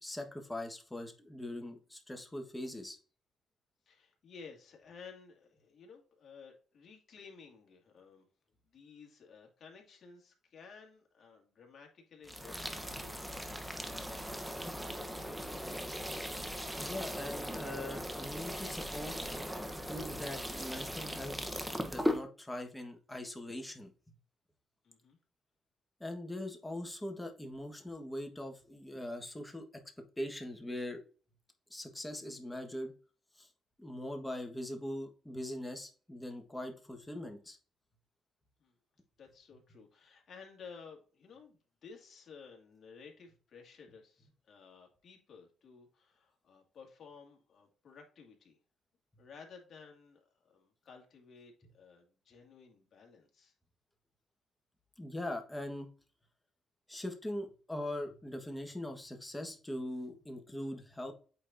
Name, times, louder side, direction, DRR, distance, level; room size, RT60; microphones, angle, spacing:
voice 1, 0.0-3.0 16.8-19.2 19.8-21.5 21.8-23.9 26.0-29.7 30.2-31.0 31.7-32.9 33.4-33.5 33.8-37.6 55.0-55.9 56.9-61.1, left 1 dB, 10° left, 4 dB, 1.5 m, -41 dB
voice 2, 3.9-8.3 8.6-15.8 24.8-25.2 38.6-38.7 39.2-48.6 49.2-50.2 50.4-53.5, left 5 dB, 55° left, 2 dB, 2.2 m, -55 dB
Watering with a Watering Can, 12.2-22.2, equal, 5° right, 1.0 m, -39 dB
8.5 x 4.2 x 2.7 m, 0.38 s
cardioid pair, 90°, 0 cm